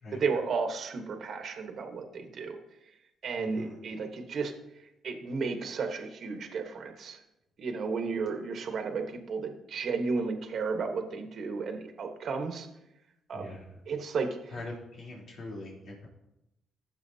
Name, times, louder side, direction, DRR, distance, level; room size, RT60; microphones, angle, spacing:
voice 1, 0.1-2.6 3.2-4.5 5.0-7.2 7.6-12.7 13.3-13.5 13.9-14.3, right 4 dB, 60° right, 5 dB, 1.2 m, -33 dB
voice 2, 3.4-3.8 13.3-13.7 14.5-16.1, left 2 dB, 60° left, -4 dB, 3.4 m, -42 dB
15.0 x 6.9 x 2.8 m, 0.88 s
cardioid pair, 90°, 0 cm